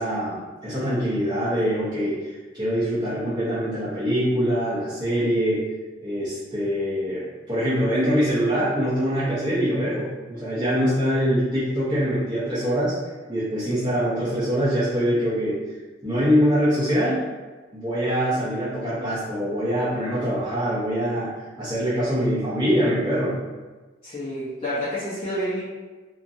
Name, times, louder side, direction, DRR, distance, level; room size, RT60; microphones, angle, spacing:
voice 1, 0.0-5.6 6.0-12.9 13.3-15.6 16.0-17.2 17.7-21.3 21.6-23.4, equal, 20° right, -10 dB, 0.6 m, -24 dB
voice 2, 24.0-25.6, equal, 30° left, -10 dB, 0.6 m, -29 dB
2.9 x 2.5 x 2.5 m, 1.3 s
head